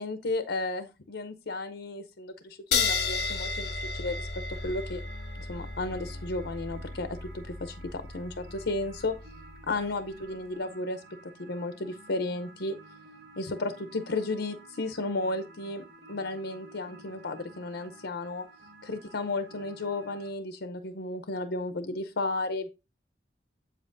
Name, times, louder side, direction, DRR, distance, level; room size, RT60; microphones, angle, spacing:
voice 1, 0.0-5.0 5.3-9.2 9.7-11.0 11.4-12.8 13.4-18.5 18.8-22.7, left 2 dB, 90° left, 9 dB, 0.7 m, -33 dB
sound 1, 2.7-9.7, left 4 dB, 60° left, 1.6 m, -33 dB
sound 2, 4.5-20.3, right 2 dB, 75° right, 2.6 m, -52 dB
8.1 x 7.6 x 2.6 m, 0.28 s
head